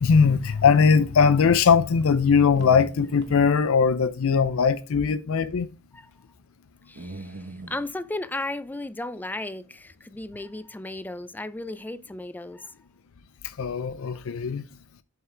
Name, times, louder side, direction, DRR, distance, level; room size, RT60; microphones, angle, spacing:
voice 1, 0.0-5.7 13.6-14.7, left 6 dB, 70° left, 0.5 m, -20 dB
sound 1, 2.2-3.6 4.9-5.2 5.6-5.7 7.0-7.9, right 2 dB, 55° right, 1.0 m, -40 dB
voice 2, 6.9-12.7 14.0-14.2, left 2 dB, 10° left, 0.4 m, -35 dB
7.3 x 5.6 x 3.3 m
head